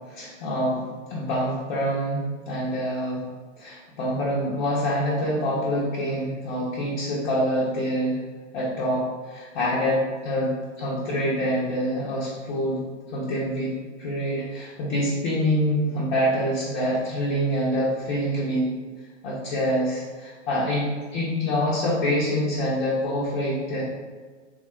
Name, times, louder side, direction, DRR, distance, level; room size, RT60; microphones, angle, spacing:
voice 1, 0.1-3.2 3.6-8.2 8.5-18.7 19.2-20.9 21.1-23.8, equal, 40° left, -7 dB, 0.8 m, -26 dB
3.6 x 2.4 x 3.1 m, 1.5 s
figure-of-eight pair, 105°, 37 cm